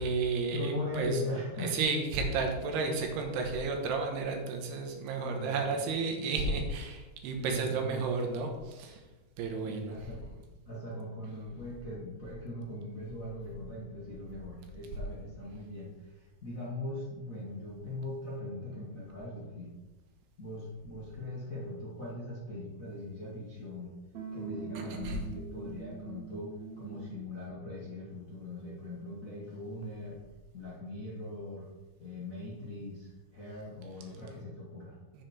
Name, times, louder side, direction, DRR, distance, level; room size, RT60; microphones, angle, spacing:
voice 1, 0.0-1.2 1.6-9.0 9.4-10.1 24.7-25.2 35.1-35.2, right 4 dB, 90° right, 2 dB, 3.3 m, -32 dB
voice 2, 0.5-1.8 5.2-5.8 7.4-8.1 9.6-19.7 20.4-23.9 24.3-30.2 30.5-31.7 32.0-35.0, left 1 dB, 55° left, -6 dB, 0.9 m, -40 dB
sound 1, 24.1-27.3, right 5 dB, 55° right, 2.2 m, -43 dB
7.8 x 7.4 x 4.4 m, 1.2 s
omnidirectional pair, 4.6 m